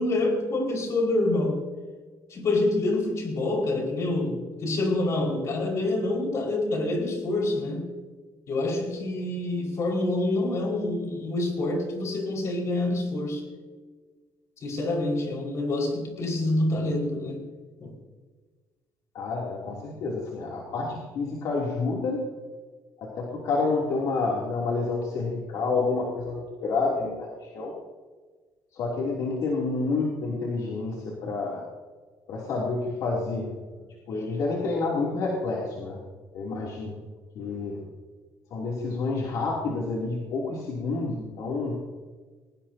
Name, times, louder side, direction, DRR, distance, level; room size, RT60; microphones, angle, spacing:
voice 1, 0.0-1.6 2.3-7.9 8.5-13.4 14.6-17.4 17.8-17.9, left 2 dB, 50° left, 0 dB, 5.4 m, -27 dB
voice 2, 19.1-22.3 23.0-27.7 28.7-31.6 32.3-33.5 34.1-36.0 36.3-37.0 37.3-37.9 38.5-41.8, left 3 dB, 65° left, -4 dB, 3.1 m, -29 dB
23.0 x 20.0 x 2.9 m, 1.4 s
cardioid pair, 115°, 7 cm